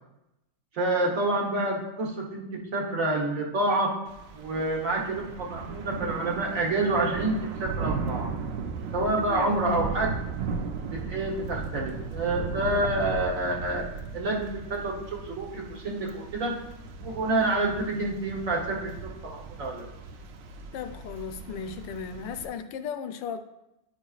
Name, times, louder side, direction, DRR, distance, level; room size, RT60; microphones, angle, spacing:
voice 1, 0.7-2.4 2.7-3.9 4.3-7.3 7.6-8.3 8.9-10.1 10.9-14.9 15.2-16.6 17.0-19.9, right 2 dB, 50° right, -2 dB, 1.4 m, -28 dB
Thunder / Rain, 4.1-22.5, right 4 dB, 85° right, 1.3 m, -36 dB
voice 2, 9.3-9.7 20.7-23.4, left 7 dB, 80° left, 8 dB, 1.3 m, -36 dB
10.0 x 5.0 x 2.4 m, 0.90 s
omnidirectional pair, 2.0 m